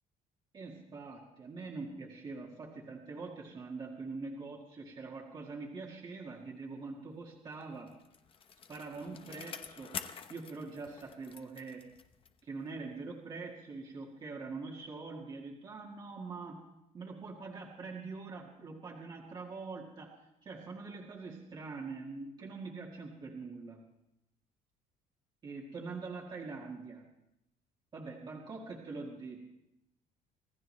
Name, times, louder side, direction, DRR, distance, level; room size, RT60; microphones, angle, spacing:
voice 1, 0.5-7.9 8.7-10.0 10.3-11.8 12.4-16.6 16.9-20.1 20.4-23.8 25.4-27.1 27.9-29.4, right 4 dB, 30° right, -2 dB, 1.8 m, -44 dB
Bicycle, 7.6-12.5 12.9-13.0, left 7 dB, 35° left, 0.9 m, -47 dB
26.0 x 15.0 x 3.2 m, 0.86 s
cardioid pair, 155°, 16 cm